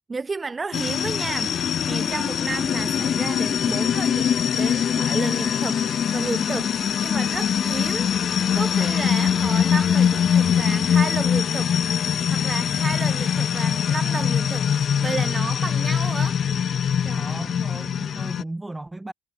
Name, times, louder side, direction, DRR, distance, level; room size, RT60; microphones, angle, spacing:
voice 1, 0.1-5.8 6.1-6.7 7.0-11.7 12.3-16.4 17.0-17.5, right 4 dB, 30° right, 2.6 m, -32 dB
sound 1, 0.7-18.4, left 8 dB, 55° left, 0.7 m, -23 dB
voice 2, 17.1-19.1, right 2 dB, 15° right, 1.2 m, -36 dB
cardioid pair, 90°, 0 cm